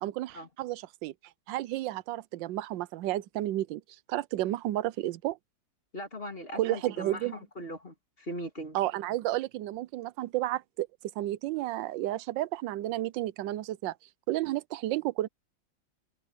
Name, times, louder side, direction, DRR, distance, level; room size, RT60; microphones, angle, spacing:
voice 1, 0.0-1.1 1.5-3.8 4.1-5.4 6.6-7.4 8.7-10.9 11.2-13.9 14.3-15.3, right 15 dB, 80° right, 1.3 m, -32 dB
voice 2, 5.9-8.8, equal, 30° left, 2.7 m, -40 dB
omnidirectional pair, 2.0 m